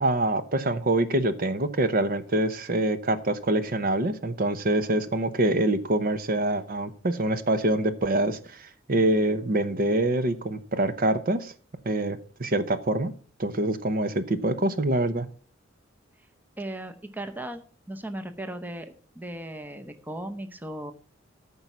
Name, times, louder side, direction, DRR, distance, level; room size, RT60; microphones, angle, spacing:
voice 1, 0.0-11.5 11.8-13.1 13.4-15.3, right 1 dB, 45° right, 11 dB, 0.8 m, -25 dB
voice 2, 16.6-17.6 17.9-20.9, right 1 dB, 10° right, 7 dB, 0.8 m, -37 dB
13.5 x 5.5 x 6.0 m, 0.41 s
head